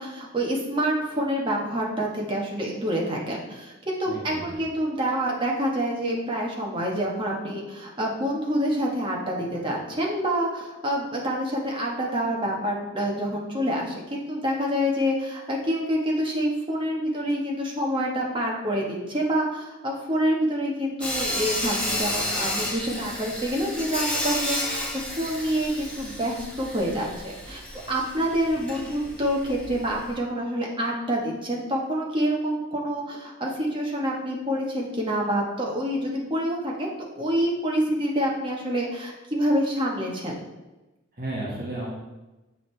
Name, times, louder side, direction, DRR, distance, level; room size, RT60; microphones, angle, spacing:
voice 1, 0.0-40.4, equal, 25° right, -2 dB, 1.1 m, -27 dB
voice 2, 4.0-4.6 41.1-41.9, right 1 dB, 50° right, -5 dB, 1.4 m, -33 dB
Sawing, 21.0-30.1, left 1 dB, 5° left, 1.3 m, -31 dB
7.8 x 5.0 x 3.3 m, 1.1 s
head